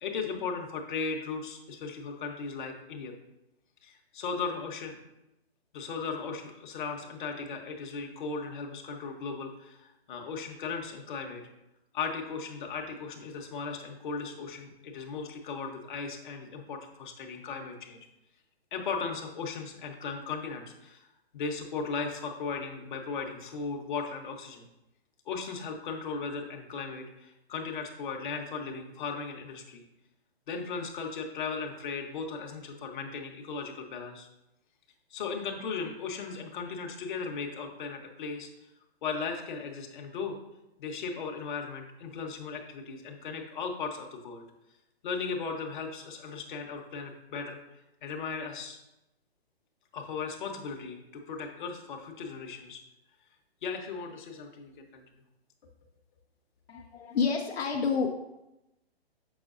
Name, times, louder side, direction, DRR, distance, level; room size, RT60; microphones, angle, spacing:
voice 1, 0.0-3.1 3.8-4.9 5.7-11.5 11.9-18.1 18.7-21.0 21.3-24.7 25.3-29.8 30.5-34.3 35.1-38.5 39.0-40.4 40.8-44.4 45.0-47.6 48.0-48.8 49.9-52.8 53.6-55.0, left 5 dB, 50° left, 3 dB, 1.1 m, -37 dB
voice 2, 56.7-58.1, left 5 dB, 70° left, 0 dB, 0.8 m, -29 dB
6.1 x 6.0 x 2.5 m, 0.91 s
hypercardioid pair, 140°, 32 cm